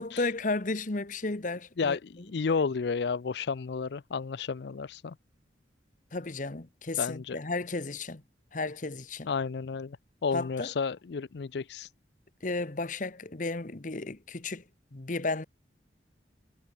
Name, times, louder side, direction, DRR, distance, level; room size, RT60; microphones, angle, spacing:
voice 1, 0.0-2.0 6.1-8.2 8.5-9.3 10.3-10.7 12.4-14.6 14.9-15.4, left 3 dB, 45° left, 1.1 m, -33 dB
voice 2, 1.8-5.2 7.0-7.4 9.3-10.0 10.2-11.9, left 5 dB, 65° left, 0.5 m, -31 dB
head